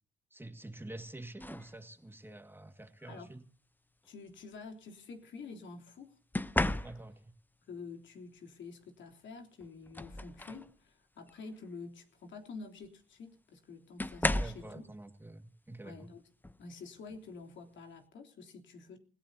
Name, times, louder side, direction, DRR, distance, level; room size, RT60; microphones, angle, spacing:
voice 1, 0.3-3.4 6.8-7.3 14.3-16.1, right 1 dB, 10° right, 1.9 m, -47 dB
sound 1, 1.4-1.7 3.0-3.3 6.3-7.3 9.1-9.2 9.6-10.7 11.2-11.5 12.8-12.9 14.0-14.7 16.4-16.6 17.1-17.4, left 1 dB, 10° left, 0.7 m, -34 dB
voice 2, 4.0-6.2 7.7-14.8 15.8-16.2 16.6-19.0, left 4 dB, 70° left, 3.3 m, -48 dB
28.0 x 17.5 x 2.8 m
cardioid pair, 90°, 20 cm